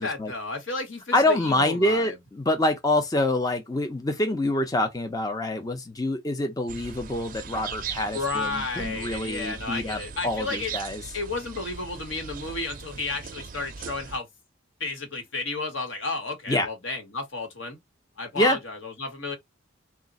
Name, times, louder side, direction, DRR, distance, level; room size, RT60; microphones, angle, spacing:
voice 1, 0.0-2.2 8.1-10.7 11.1-14.3 14.8-17.8 18.2-19.4, left 3 dB, 80° left, 1.5 m, -32 dB
voice 2, 1.1-11.0 16.5-16.7 18.4-18.6, left 1 dB, 20° left, 0.5 m, -26 dB
sound 1, 6.7-14.2, right 6 dB, 45° right, 0.5 m, -39 dB
3.7 x 2.4 x 4.0 m
head